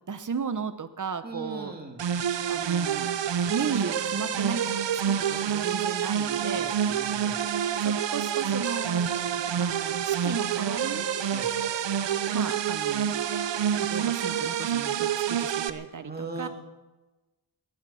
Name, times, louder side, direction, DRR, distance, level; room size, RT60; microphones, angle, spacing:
voice 1, 0.1-1.7 2.5-3.1 3.5-6.8 7.8-9.1 9.6-11.3 12.3-13.3 13.8-16.5, right 6 dB, 45° right, 12 dB, 1.1 m, -35 dB
voice 2, 1.2-2.0 6.5-7.4 11.3-11.5 16.0-16.5, right 3 dB, 20° right, 2 dB, 2.9 m, -39 dB
sound 1, 2.0-15.7, right 8 dB, 75° right, 0.9 m, -27 dB
19.5 x 12.0 x 5.8 m, 1.2 s
wide cardioid pair, 90°, 43 cm